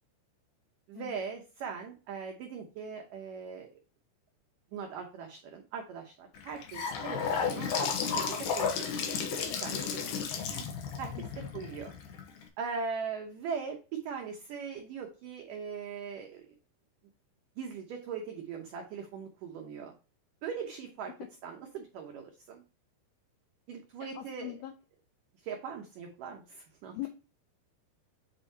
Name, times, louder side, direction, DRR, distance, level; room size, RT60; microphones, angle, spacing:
voice 1, 0.9-3.7 4.7-7.7 8.0-8.8 9.6-9.9 10.5-10.6 11.0-12.0 12.6-16.4 17.6-19.9 20.4-21.1 21.4-22.6 23.7-24.6 25.4-27.1, right 6 dB, 85° right, 2 dB, 1.9 m, -40 dB
Gurgling / Sink (filling or washing) / Bathtub (filling or washing), 6.3-12.4, left 6 dB, 70° left, 2.1 m, -33 dB
voice 2, 24.1-24.7 26.9-27.1, left 14 dB, 85° left, 7 dB, 2.1 m, -40 dB
8.1 x 4.5 x 2.8 m, 0.33 s
omnidirectional pair, 5.0 m